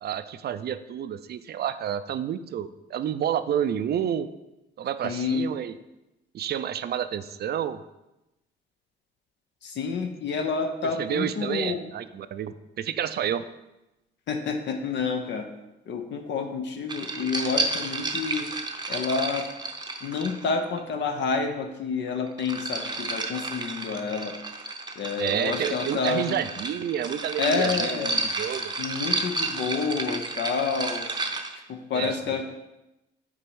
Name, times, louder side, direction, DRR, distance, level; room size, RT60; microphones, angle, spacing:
voice 1, 0.0-4.3 4.8-5.8 6.3-7.8 11.0-13.4 25.2-28.7 31.9-32.4, right 9 dB, 55° right, 13 dB, 0.4 m, -30 dB
voice 2, 5.0-5.4 9.6-11.8 14.3-15.5 15.9-18.5 18.9-19.5 20.0-24.4 25.0-26.4 27.4-28.1 28.8-31.1 31.7-32.4, left 5 dB, 65° left, 4 dB, 0.7 m, -29 dB
sound 1, 16.9-20.8 22.1-31.6, right 3 dB, 20° right, 0.7 m, -32 dB
6.1 x 4.1 x 4.7 m, 0.96 s
cardioid pair, 90°, 20 cm